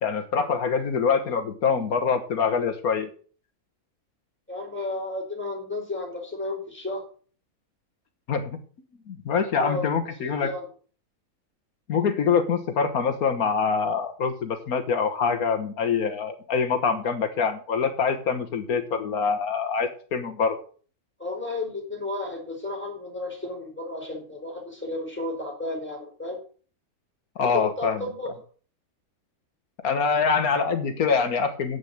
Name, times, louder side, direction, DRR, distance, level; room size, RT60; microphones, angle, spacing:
voice 1, 0.0-3.1 8.3-8.5 9.1-10.5 11.9-20.6 27.4-28.0 29.8-31.8, left 5 dB, 80° left, 7 dB, 1.6 m, -25 dB
voice 2, 4.5-7.0 9.6-9.8 10.2-10.7 21.2-26.4 27.4-28.3, left 2 dB, 5° left, -1 dB, 4.5 m, -32 dB
9.6 x 8.1 x 7.1 m, 0.42 s
omnidirectional pair, 1.6 m